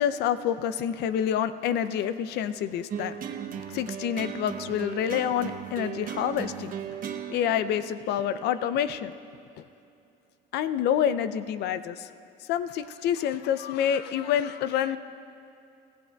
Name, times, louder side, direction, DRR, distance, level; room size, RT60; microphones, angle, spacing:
voice 1, 0.0-3.2 3.7-6.7 7.3-9.1 10.5-12.1 12.5-15.0, left 9 dB, 80° left, 12 dB, 0.5 m, -27 dB
sound 1, 2.9-9.4, right 8 dB, 55° right, 1.0 m, -37 dB
24.0 x 15.5 x 2.3 m, 2.6 s
cardioid pair, 110°, 17 cm